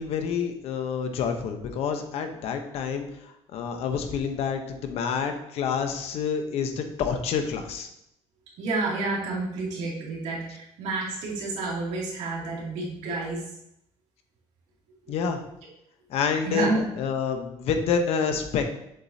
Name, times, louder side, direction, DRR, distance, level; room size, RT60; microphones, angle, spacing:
voice 1, 0.0-7.9 15.1-15.4 16.1-16.7 16.9-18.6, left 6 dB, 65° left, 6 dB, 0.8 m, -28 dB
voice 2, 8.6-13.5 16.4-16.8, right 3 dB, 85° right, -4 dB, 2.4 m, -29 dB
7.4 x 7.1 x 2.7 m, 0.79 s
cardioid pair, 165°, 11 cm